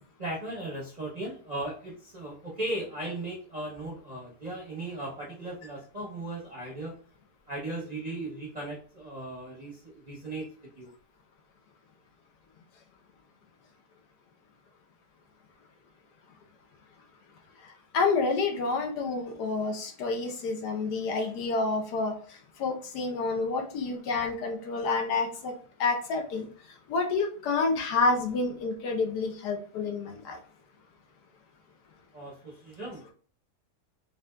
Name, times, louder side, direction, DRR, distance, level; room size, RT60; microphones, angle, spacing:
voice 1, 0.2-6.9 7.5-10.5 10.8-10.9 32.1-33.1, right 2 dB, 35° right, -5 dB, 0.7 m, -37 dB
voice 2, 17.9-22.1 22.6-25.5 25.8-26.5 26.9-30.4, left 3 dB, 75° left, 3 dB, 1.4 m, -28 dB
4.1 x 3.6 x 2.2 m, 0.43 s
omnidirectional pair, 1.8 m